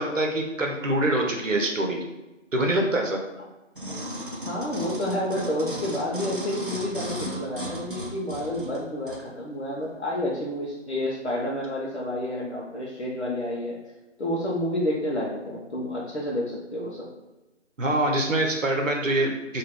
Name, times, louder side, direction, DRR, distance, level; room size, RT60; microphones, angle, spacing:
voice 1, 0.0-2.0 2.5-3.2 17.8-19.6, right 1 dB, 90° right, 1 dB, 0.7 m, -24 dB
sound 1, 3.8-9.2 9.8-9.9, equal, 45° right, 0.5 m, -35 dB
voice 2, 4.4-13.8 14.2-17.1, left 1 dB, 60° left, -4 dB, 0.6 m, -29 dB
2.3 x 2.0 x 3.4 m, 1.0 s
figure-of-eight pair, 160°, 38 cm